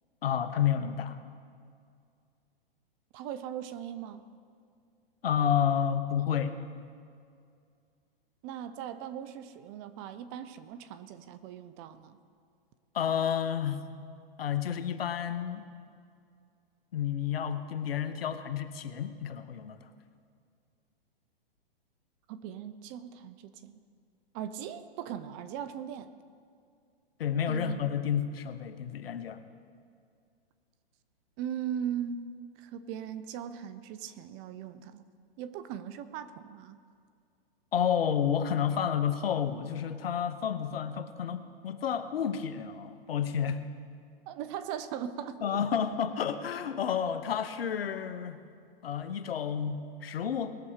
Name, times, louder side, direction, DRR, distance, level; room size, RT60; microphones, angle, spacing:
voice 1, 0.2-1.2 5.2-6.6 12.9-13.8 14.4-15.6 16.9-19.8 27.2-29.4 37.7-43.6 45.4-48.4 48.8-50.6, left 8 dB, 75° left, 11 dB, 1.0 m, -30 dB
voice 2, 3.1-4.3 8.4-12.2 22.3-23.8 24.3-26.1 27.5-27.9 31.4-32.2 32.6-35.0 35.4-36.8 44.3-45.6, right 9 dB, 30° right, 12 dB, 0.6 m, -39 dB
20.0 x 6.9 x 5.0 m, 2.3 s
hypercardioid pair, 130°, 30 cm